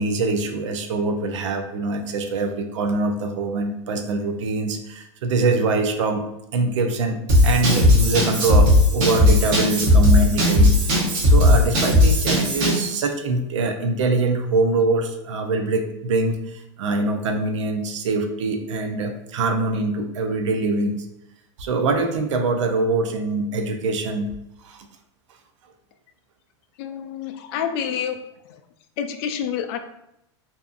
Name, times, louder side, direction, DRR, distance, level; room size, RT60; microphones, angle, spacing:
voice 1, 0.0-6.2 6.5-10.8 11.2-21.1 21.6-24.3 24.6-24.9, right 3 dB, 80° right, 6 dB, 0.4 m, -24 dB
Drum kit / Drum, 7.3-12.9, left 1 dB, 55° right, 1.0 m, -17 dB
voice 2, 26.8-28.2 28.5-28.6 29.0-29.8, left 8 dB, 55° left, 6 dB, 0.4 m, -28 dB
2.7 x 2.3 x 2.4 m, 0.82 s
hypercardioid pair, 110°, 15 cm